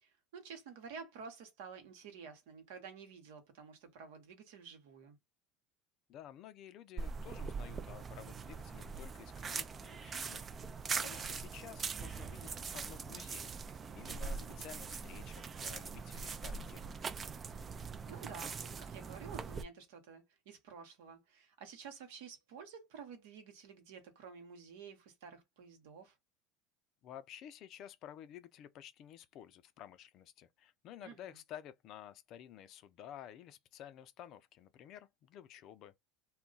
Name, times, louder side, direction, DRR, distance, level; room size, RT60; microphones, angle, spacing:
voice 1, 0.0-5.2 10.9-11.3 14.1-14.5 18.1-26.2 31.0-31.4, right 6 dB, 75° right, 0.9 m, -51 dB
voice 2, 6.1-17.1 27.0-35.9, left 10 dB, 55° left, 0.4 m, -52 dB
sound 1, 7.0-19.6, right 5 dB, 30° right, 0.4 m, -42 dB
2.3 x 2.1 x 3.8 m
hypercardioid pair, 80°, 0 cm